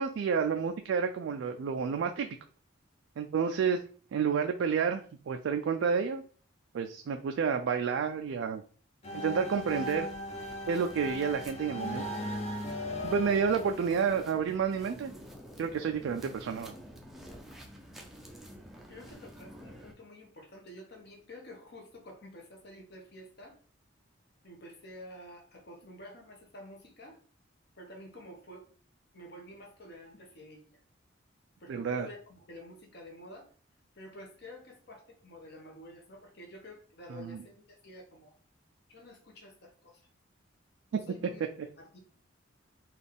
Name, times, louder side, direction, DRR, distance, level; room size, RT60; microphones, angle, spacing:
voice 1, 0.0-2.3 3.2-3.8 4.1-6.2 6.7-8.6 9.1-10.1 10.7-12.0 13.0-15.1 15.6-16.7 31.7-32.1 37.1-37.4 40.9-41.0, right 6 dB, 70° right, 5 dB, 0.3 m, -30 dB
sound 1, 9.0-14.8, left 1 dB, 35° left, 0.8 m, -38 dB
sound 2, 9.1-19.9, equal, ahead, 0.4 m, -50 dB
voice 2, 18.9-23.6 24.4-27.2 27.7-28.7 29.1-30.8 31.6-33.5 33.9-38.3 38.9-40.1 40.9-41.4 41.8-42.0, left 1 dB, 55° left, 1 dB, 1.1 m, -50 dB
4.0 x 2.4 x 3.4 m, 0.42 s
head